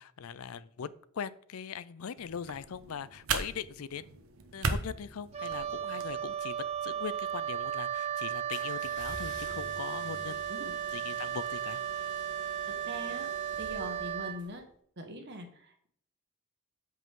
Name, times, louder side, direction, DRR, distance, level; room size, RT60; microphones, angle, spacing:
voice 1, 0.0-4.1 4.5-10.4 10.9-11.8, left 7 dB, 80° left, 17 dB, 0.5 m, -41 dB
sound 1, 2.2-6.1, right 4 dB, 70° right, 1.0 m, -37 dB
Wind instrument woodwind instrument, 5.3-14.4, right 9 dB, 30° right, 0.6 m, -35 dB
sound 2, 8.5-14.5, left 2 dB, 55° left, 1.6 m, -49 dB
voice 2, 12.7-13.3 13.6-14.7 15.0-15.9, equal, 55° right, 5 dB, 1.5 m, -42 dB
8.1 x 7.5 x 3.7 m, 0.62 s
head